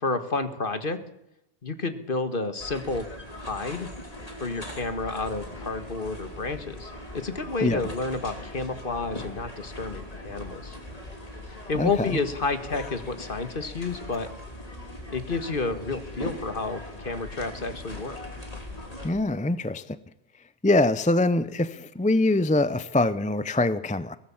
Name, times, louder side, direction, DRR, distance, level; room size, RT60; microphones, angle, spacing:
voice 1, 0.0-1.0 1.6-3.1 3.4-3.9 4.4-10.8 11.7-14.3 15.1-18.2, left 3 dB, 50° left, 1.9 m, -30 dB
sound 1, 2.6-19.1, left 1 dB, 35° left, 3.3 m, -40 dB
voice 2, 11.8-12.1 19.0-20.0 20.6-24.2, left 2 dB, 10° left, 0.5 m, -24 dB
22.0 x 18.0 x 7.2 m
omnidirectional pair, 1.2 m